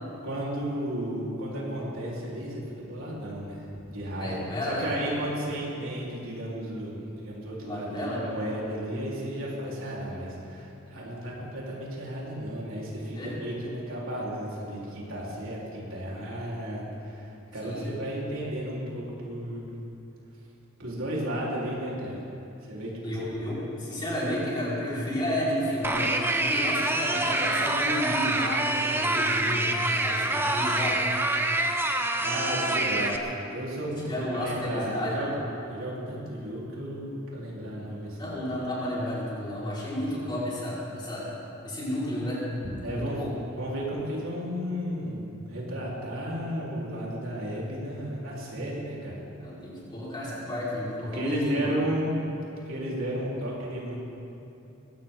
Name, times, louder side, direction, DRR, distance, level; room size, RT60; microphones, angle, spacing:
voice 1, 0.2-19.7 20.8-22.2 22.7-23.2 32.2-35.3 35.7-38.4 42.8-43.3 43.6-49.2 51.1-52.3 52.7-54.0, equal, 80° right, -5 dB, 4.2 m, -33 dB
voice 2, 4.2-4.9 7.6-8.2 13.1-13.3 17.6-17.9 23.0-31.0 33.1-33.2 34.1-35.2 38.2-41.3 41.6-42.5 42.9-43.3 49.4-51.8, left 1 dB, 20° left, -8 dB, 5.0 m, -31 dB
sound 1, 25.8-33.2, right 2 dB, 10° right, 0.8 m, -26 dB
21.5 x 17.0 x 3.9 m, 2.8 s
head